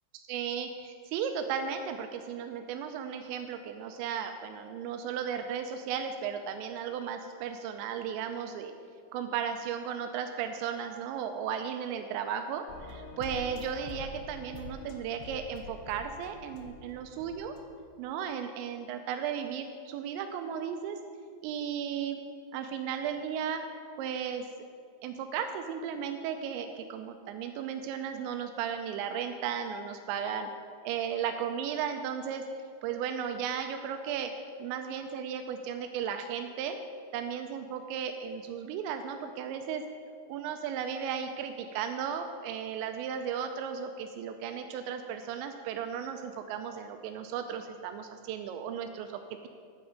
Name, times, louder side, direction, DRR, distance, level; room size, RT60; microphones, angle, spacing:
voice 1, 0.1-8.7 9.1-17.6 18.0-21.0 21.4-22.2 22.5-23.6 24.0-24.5 25.0-30.5 30.8-32.5 32.8-34.3 34.6-36.8 37.1-39.8 40.3-49.5, right 8 dB, 85° right, 6 dB, 2.9 m, -35 dB
sound 1, 12.7-17.7, left 3 dB, 75° left, 2.9 m, -45 dB
9.7 x 9.4 x 5.1 m, 2.2 s
omnidirectional pair, 5.1 m